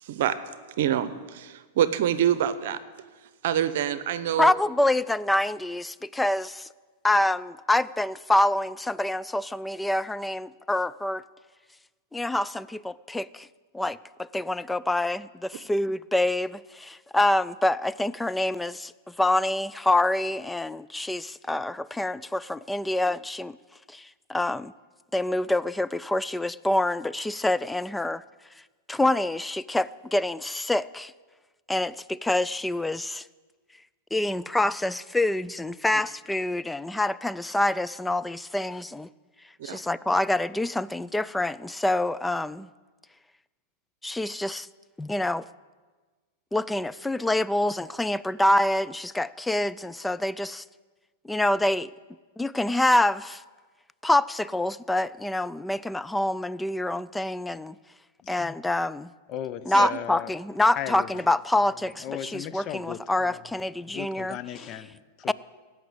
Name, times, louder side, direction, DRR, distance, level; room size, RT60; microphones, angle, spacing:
voice 1, 0.0-0.4 0.8-2.8 3.4-4.5 39.6-39.8 59.7-59.9, right 10 dB, 65° right, 0.8 m, -26 dB
voice 2, 4.4-6.7 7.0-11.2 12.1-13.5 13.7-18.9 19.2-23.6 23.9-24.7 25.1-28.2 28.9-31.1 31.7-33.2 34.1-39.1 39.6-42.7 44.0-44.7 45.0-45.5 46.5-50.6 51.2-51.9 52.4-53.4 54.0-57.8 58.3-59.1 59.7-64.4 65.3-65.4, left 1 dB, 5° left, 0.3 m, -26 dB
voice 3, 59.3-60.3 60.8-61.3 61.6-63.4 63.8-65.3, left 10 dB, 40° left, 0.7 m, -37 dB
16.0 x 6.0 x 8.6 m
hypercardioid pair, 105°, 0 cm